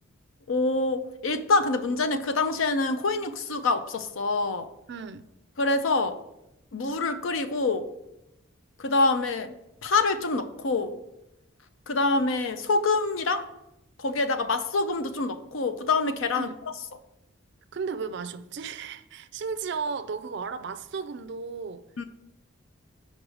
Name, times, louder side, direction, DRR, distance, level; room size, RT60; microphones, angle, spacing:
voice 1, 0.5-4.7 5.6-6.2 6.7-7.9 8.8-9.5 9.8-11.0 11.9-13.5 14.0-16.5 22.0-22.1, left 3 dB, 70° left, 0.6 m, -26 dB
voice 2, 4.9-5.2 16.4-16.6 17.7-21.9, right 5 dB, 55° right, 0.4 m, -34 dB
5.3 x 4.7 x 6.3 m
head